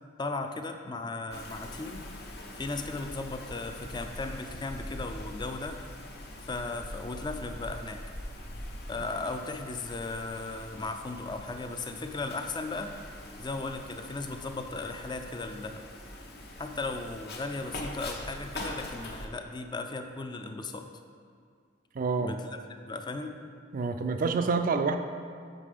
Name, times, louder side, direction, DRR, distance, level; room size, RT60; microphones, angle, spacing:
voice 1, 0.2-2.0 2.6-5.8 6.5-8.0 8.9-12.9 13.4-15.8 16.6-20.9 22.2-22.6 22.9-23.4, left 3 dB, 25° left, 6 dB, 0.4 m, -36 dB
Wind, 1.3-19.3, left 1 dB, 55° left, 1.0 m, -43 dB
voice 2, 21.9-22.4 23.7-25.0, right 4 dB, 45° right, 8 dB, 0.4 m, -27 dB
6.6 x 5.4 x 5.0 m, 2.2 s
head